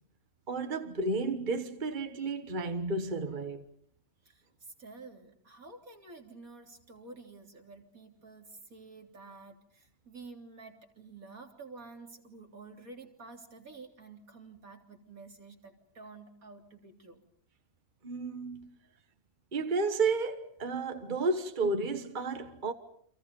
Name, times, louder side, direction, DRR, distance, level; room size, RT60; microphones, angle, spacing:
voice 1, 0.5-3.7 18.0-18.8 19.5-22.7, right 3 dB, 35° right, 1.5 m, -32 dB
voice 2, 4.2-17.2, right 3 dB, 75° right, 3.9 m, -50 dB
30.0 x 27.0 x 5.4 m
omnidirectional pair, 1.5 m